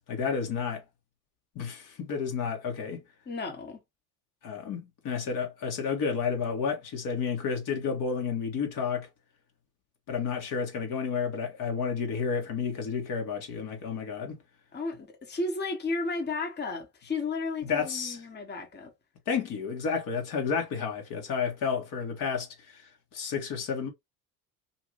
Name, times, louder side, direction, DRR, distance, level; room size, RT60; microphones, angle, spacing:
voice 1, 0.1-0.8 1.5-3.0 4.4-9.1 10.1-14.4 17.6-18.2 19.3-23.9, left 6 dB, 45° left, 1.2 m, -31 dB
voice 2, 3.3-3.8 14.7-18.9, left 3 dB, 25° left, 1.2 m, -33 dB
2.6 x 2.6 x 3.0 m
hypercardioid pair, 75°, 44 cm